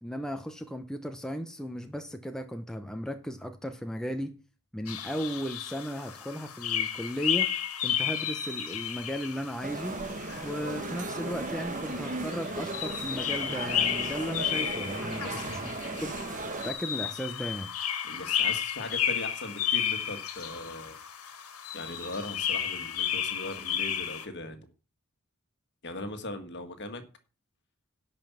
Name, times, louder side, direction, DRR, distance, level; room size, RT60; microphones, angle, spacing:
voice 1, 0.0-4.3 4.7-7.5 7.8-10.0 10.4-15.6 16.0-16.2 16.5-17.7, equal, 5° left, 0.8 m, -35 dB
sound 1, 4.9-24.3, left 9 dB, 80° left, 1.7 m, -33 dB
sound 2, 9.6-16.7, right 2 dB, 35° right, 1.3 m, -36 dB
voice 2, 18.0-21.0 21.7-24.7 25.8-27.0, left 2 dB, 50° left, 1.8 m, -39 dB
11.5 x 5.4 x 7.3 m
head